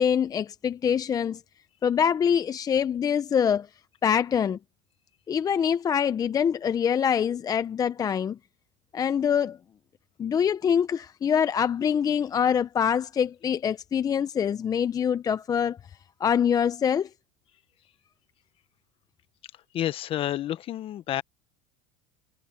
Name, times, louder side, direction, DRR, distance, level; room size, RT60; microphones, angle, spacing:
voice 1, 0.0-1.4 1.8-3.7 4.0-4.6 5.3-8.4 8.9-9.6 10.2-15.8 16.2-17.1, left 8 dB, 25° left, 0.7 m, -24 dB
voice 2, 19.7-21.2, left 12 dB, 45° left, 1.2 m, -29 dB
supercardioid pair, 105°, 13 cm